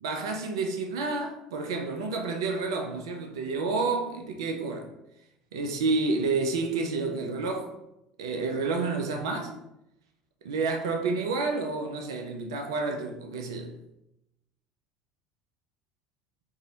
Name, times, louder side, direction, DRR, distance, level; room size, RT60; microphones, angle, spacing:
voice 1, 0.0-4.9 5.5-7.7 8.2-9.6 10.4-13.7, right 3 dB, 75° right, 0.3 m, -29 dB
2.6 x 2.0 x 2.7 m
figure-of-eight pair, 65°, 3 cm